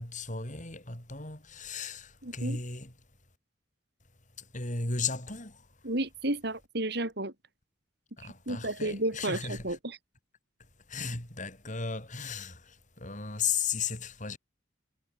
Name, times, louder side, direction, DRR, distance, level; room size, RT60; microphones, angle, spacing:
voice 1, 0.0-2.9 4.4-5.7 8.2-9.8 10.9-14.4, left 5 dB, 40° left, 7.9 m, -35 dB
voice 2, 2.2-2.6 5.8-7.3 8.2-10.0, right 1 dB, 60° right, 4.0 m, -32 dB
head